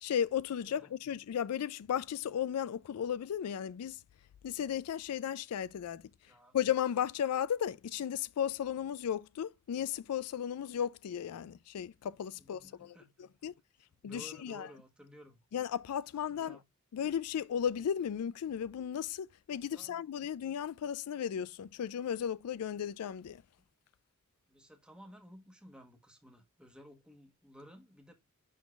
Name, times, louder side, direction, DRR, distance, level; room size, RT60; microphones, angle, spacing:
voice 1, 0.0-4.0 4.4-6.1 6.5-13.5 14.0-14.7 15.5-16.6 16.9-23.4, left 9 dB, 85° left, 0.4 m, -35 dB
voice 2, 0.6-0.9 6.2-6.6 12.4-13.1 13.4-13.5 13.9-15.4 16.3-16.6 19.7-20.1 23.6-23.7 24.5-28.1, equal, 5° right, 1.4 m, -55 dB
11.0 x 3.8 x 2.4 m
head